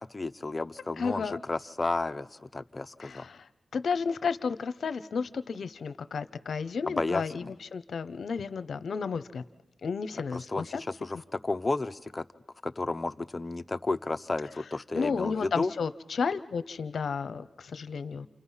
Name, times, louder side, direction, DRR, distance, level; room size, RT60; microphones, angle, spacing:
voice 1, 0.1-3.3 6.9-7.5 10.3-12.2 12.6-15.7, left 2 dB, 30° left, 9 dB, 0.8 m, -32 dB
voice 2, 1.0-1.4 3.0-3.4 3.7-7.4 7.7-9.4 9.8-10.8 14.9-18.3, left 5 dB, 70° left, 13 dB, 0.8 m, -32 dB
30.0 x 28.0 x 5.7 m, 1.0 s
cardioid pair, 60°, 0 cm